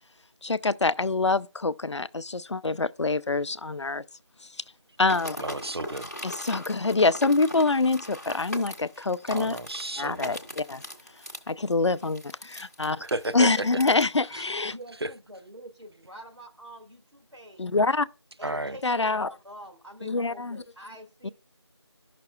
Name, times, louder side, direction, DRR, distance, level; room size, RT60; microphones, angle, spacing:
voice 1, 0.4-4.0 5.0-5.4 6.2-9.6 10.0-10.8 11.5-13.0 13.3-14.7 17.6-18.1 18.8-19.3 20.0-20.6 21.2-21.3, left 3 dB, 80° left, 0.4 m, -25 dB
sound 1, 5.0-14.0, left 1 dB, 35° left, 0.9 m, -40 dB
voice 2, 5.4-6.1 9.3-10.3 13.0-13.6 14.3-14.4 18.4-18.8, right 2 dB, 60° right, 0.5 m, -32 dB
voice 3, 14.7-17.7 18.4-21.3, equal, 85° right, 1.8 m, -46 dB
10.5 x 5.9 x 2.2 m
figure-of-eight pair, 180°, 15 cm